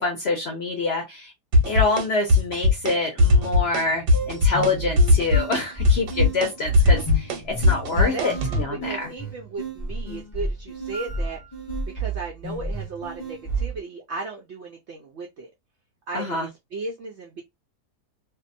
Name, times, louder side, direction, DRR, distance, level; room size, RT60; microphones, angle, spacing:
voice 1, 0.0-1.3 1.7-9.1 16.1-16.5, left 3 dB, 60° left, 0.7 m, -26 dB
sound 1, 1.5-2.0 2.3-2.9 3.2-4.7 5.0-8.6, left 2 dB, 90° right, 1.3 m, -18 dB
sound 2, 4.1-13.8, right 2 dB, 25° left, 0.8 m, -32 dB
voice 2, 7.9-11.4 11.8-15.5 16.1-17.4, right 3 dB, 75° right, 0.6 m, -35 dB
2.6 x 2.1 x 2.5 m
omnidirectional pair, 1.7 m